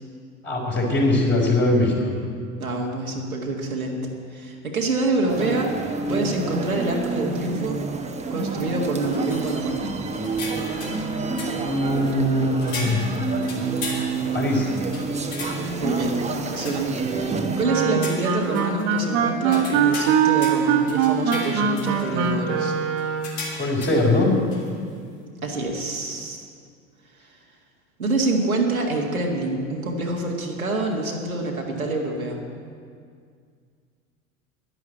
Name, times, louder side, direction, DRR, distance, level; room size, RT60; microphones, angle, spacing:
voice 1, 0.4-1.9 11.5-14.7 23.5-24.3, left 1 dB, 25° left, -2 dB, 4.2 m, -22 dB
voice 2, 2.6-4.0 4.3-5.7 6.1-7.8 8.3-9.8 15.8-16.2 16.5-22.7 25.4-26.4 28.0-32.4, right 2 dB, 90° right, -1 dB, 1.8 m, -26 dB
sound 1, 5.3-17.6, right 4 dB, 15° right, 1.2 m, -28 dB
sound 2, 8.3-8.5 9.0-9.7 10.1-11.0 11.4-12.1 12.6-14.5 14.9-15.8 16.5-17.1 17.6-19.0 19.5-22.3 23.0-24.2 24.5-24.7, left 3 dB, 60° left, 3.1 m, -37 dB
Wind instrument woodwind instrument, 17.6-23.4, right 7 dB, 50° right, 1.6 m, -22 dB
11.0 x 11.0 x 7.9 m, 2.1 s
figure-of-eight pair, 70°, 41 cm